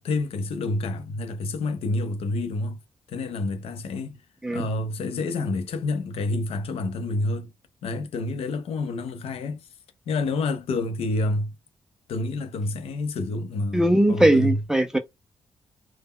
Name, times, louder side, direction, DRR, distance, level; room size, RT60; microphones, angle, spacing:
voice 1, 0.0-2.8 3.1-4.2 4.5-7.5 7.8-9.7 10.1-11.5 12.1-14.6, left 2 dB, 75° left, 0.5 m, -28 dB
voice 2, 13.7-15.0, right 1 dB, 5° right, 0.4 m, -20 dB
2.1 x 2.0 x 3.5 m
wide cardioid pair, 160°, 10 cm